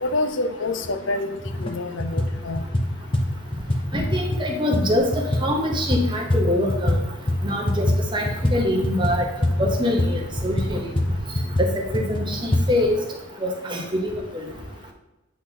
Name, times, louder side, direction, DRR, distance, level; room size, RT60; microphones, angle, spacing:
voice 1, 0.0-2.6, left 2 dB, 75° left, 9 dB, 0.5 m, -27 dB
sound 1, 0.8-0.9 1.4-1.7 2.0-7.0 7.3-12.6, left 1 dB, 25° left, 0.7 m, -24 dB
voice 2, 3.9-7.0 7.4-9.3 9.6-10.9 11.6-13.0 13.4-14.1 14.3-14.5, left 1 dB, 25° right, 0 dB, 1.0 m, -24 dB
8.5 x 4.0 x 2.9 m, 1.0 s
head